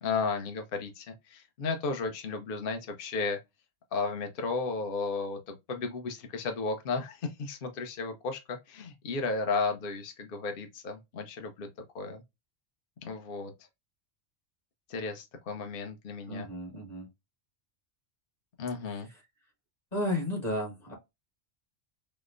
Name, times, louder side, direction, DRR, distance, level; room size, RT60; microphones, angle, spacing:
voice 1, 0.0-3.4 3.9-11.7 11.9-12.2 13.0-13.5 14.9-16.5 18.6-19.1, left 4 dB, 55° left, 0.9 m, -34 dB
voice 2, 16.3-17.1 18.9-19.1 19.9-20.9, left 1 dB, 40° left, 1.6 m, -33 dB
5.0 x 2.1 x 2.4 m
omnidirectional pair, 1.1 m